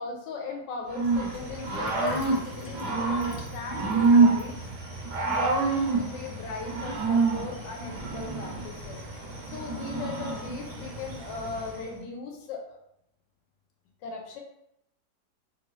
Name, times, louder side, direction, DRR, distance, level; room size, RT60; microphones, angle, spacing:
voice 1, 0.0-4.7 5.1-9.0 9.5-12.8 14.0-14.4, left 4 dB, 80° left, 1 dB, 1.3 m, -38 dB
Growling / Cricket, 0.9-11.8, right 3 dB, 70° right, 1.2 m, -27 dB
Sink (filling or washing), 1.2-5.9, left 3 dB, 65° left, 0.7 m, -47 dB
3.3 x 2.6 x 3.0 m, 0.79 s
omnidirectional pair, 1.9 m